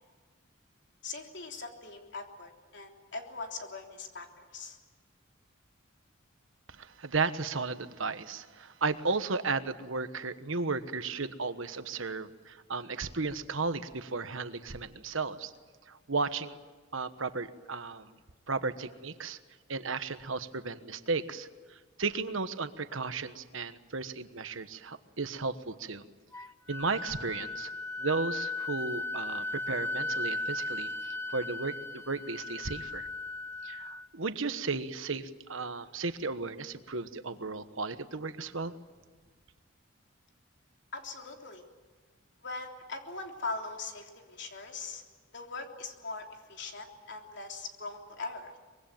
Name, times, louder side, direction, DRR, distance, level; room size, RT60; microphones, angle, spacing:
voice 1, 1.0-4.3 4.5-4.8 40.9-41.6 42.4-45.0 45.3-48.6, left 3 dB, 60° left, 3 dB, 3.4 m, -41 dB
voice 2, 6.7-15.5 15.9-16.6 16.9-18.1 18.5-19.4 19.7-26.0 26.7-27.7 28.0-33.1 33.6-38.7, right 4 dB, 75° right, 11 dB, 1.3 m, -34 dB
Wind instrument woodwind instrument, 26.3-34.1, left 2 dB, 15° left, 0.9 m, -36 dB
24.5 x 22.5 x 9.2 m, 1.4 s
head